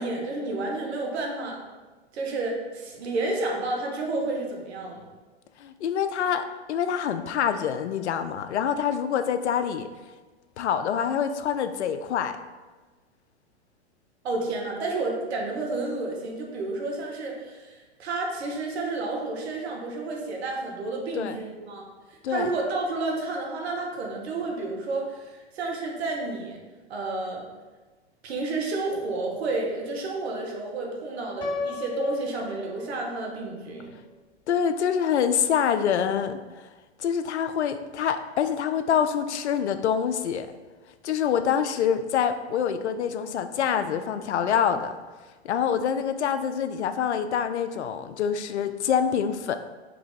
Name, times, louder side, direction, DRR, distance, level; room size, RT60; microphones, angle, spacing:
voice 1, 0.0-1.6 2.1-5.0 14.2-26.6 26.9-27.4 28.2-33.9, right 2 dB, 70° right, 0 dB, 1.2 m, -31 dB
voice 2, 5.6-9.9 10.6-12.4 21.1-21.4 22.2-22.5 34.5-36.4 37.0-40.5 41.0-44.9 45.4-49.5, left 8 dB, 85° left, 10 dB, 0.5 m, -26 dB
Piano, 31.4-33.4, left 4 dB, 15° left, 0.3 m, -34 dB
4.9 x 2.8 x 3.6 m, 1.3 s
hypercardioid pair, 115°, 33 cm